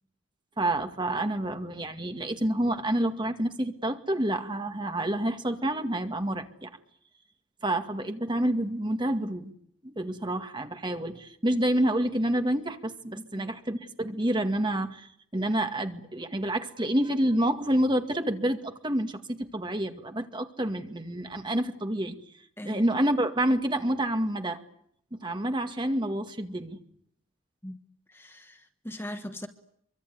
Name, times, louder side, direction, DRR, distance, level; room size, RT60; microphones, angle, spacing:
voice 1, 0.6-6.7 7.6-9.5 9.8-22.2 22.6-24.6 25.1-26.8, right 1 dB, 20° right, 7 dB, 2.0 m, -28 dB
voice 2, 28.1-29.5, left 1 dB, 10° left, 7 dB, 1.3 m, -40 dB
26.0 x 24.0 x 9.6 m, 0.69 s
head